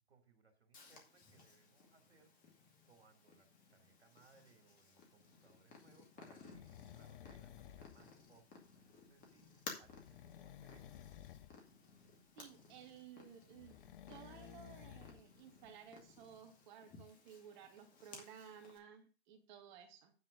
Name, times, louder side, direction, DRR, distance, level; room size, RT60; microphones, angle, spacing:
voice 1, 0.0-2.3 2.9-11.0, right 4 dB, 80° right, 5 dB, 2.6 m, -69 dB
Purr, 0.7-18.8, left 4 dB, 25° left, 2.3 m, -58 dB
sound 1, 6.5-8.0 9.8-11.6 13.6-15.2 15.7-15.8, left 11 dB, 55° left, 0.7 m, -55 dB
voice 2, 12.4-13.8 14.1-20.1, right 8 dB, 45° right, 5 dB, 2.0 m, -56 dB
9.5 x 4.5 x 6.4 m, 0.34 s
figure-of-eight pair, 115°, 32 cm